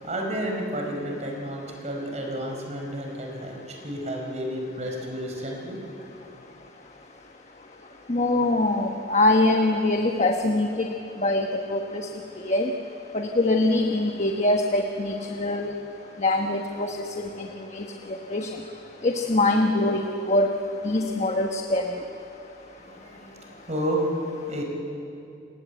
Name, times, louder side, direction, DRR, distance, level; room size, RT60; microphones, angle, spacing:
voice 1, 0.0-5.8 22.9-24.6, equal, 40° right, 1 dB, 4.6 m, -31 dB
voice 2, 8.1-10.9 11.2-12.0 12.4-12.7 13.1-15.7 16.2-18.5 19.0-20.0 20.3-20.5 20.8-21.8, left 2 dB, 40° left, 3 dB, 1.2 m, -23 dB
28.5 x 19.0 x 8.1 m, 2.7 s
head